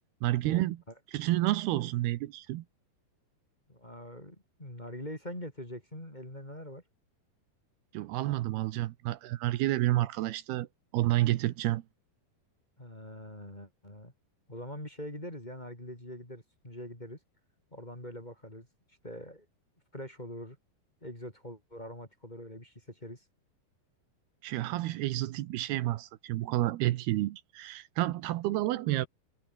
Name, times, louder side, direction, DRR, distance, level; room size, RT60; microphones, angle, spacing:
voice 1, 0.2-0.8 1.1-2.6 7.9-10.7 10.9-11.8 24.4-29.1, right 16 dB, 80° right, 2.9 m, -30 dB
voice 2, 3.7-6.8 12.8-14.1 14.5-17.2 17.7-19.5 19.9-20.6 21.0-23.2, left 1 dB, 10° left, 4.6 m, -43 dB
omnidirectional pair, 4.6 m